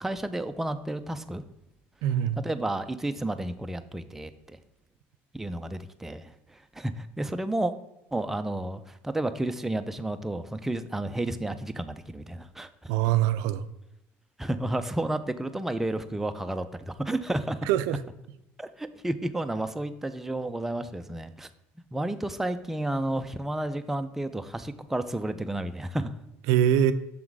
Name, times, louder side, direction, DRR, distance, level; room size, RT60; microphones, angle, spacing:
voice 1, 0.0-1.4 2.4-4.6 5.3-6.3 6.7-7.7 8.1-12.9 14.4-17.6 18.6-21.5 21.9-26.1, right 1 dB, 5° right, 8 dB, 0.4 m, -31 dB
voice 2, 2.0-2.4 12.9-13.6 17.6-18.0 26.5-26.9, right 10 dB, 80° right, 13 dB, 0.4 m, -23 dB
6.2 x 3.8 x 4.6 m, 0.89 s
cardioid pair, 115°, 6 cm